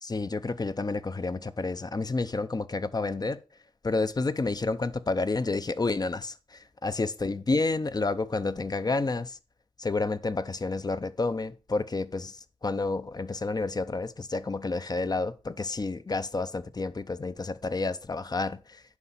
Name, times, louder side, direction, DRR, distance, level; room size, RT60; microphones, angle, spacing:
voice 1, 0.0-3.4 3.8-9.4 9.8-12.4 12.6-18.8, left 3 dB, 40° left, 0.6 m, -30 dB
9.6 x 5.6 x 4.2 m
wide cardioid pair, 65°, 11 cm